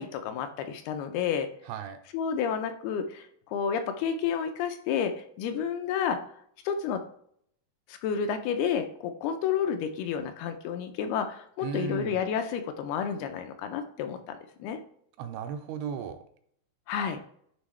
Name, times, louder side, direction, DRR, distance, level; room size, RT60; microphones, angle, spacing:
voice 1, 0.0-1.5 2.1-6.2 6.7-7.0 7.9-14.8 16.9-17.2, left 7 dB, 85° left, 7 dB, 2.4 m, -30 dB
voice 2, 1.6-2.0 11.6-12.2 15.2-16.2, right 7 dB, 85° right, 7 dB, 2.3 m, -35 dB
9.8 x 3.5 x 3.2 m, 0.64 s
omnidirectional pair, 4.7 m